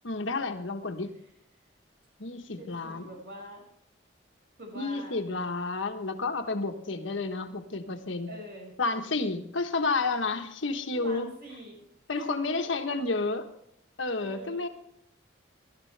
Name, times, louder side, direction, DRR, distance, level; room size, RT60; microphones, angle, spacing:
voice 1, 0.0-1.2 2.2-3.1 4.7-8.3 8.8-11.3 12.1-13.5 14.0-14.7, left 3 dB, 80° left, 6 dB, 1.3 m, -31 dB
voice 2, 2.6-3.6 4.6-5.2 8.3-8.7 10.9-11.9 12.1-12.9 14.2-14.7, right 1 dB, 55° right, 0 dB, 6.0 m, -44 dB
18.5 x 12.0 x 3.4 m, 0.73 s
head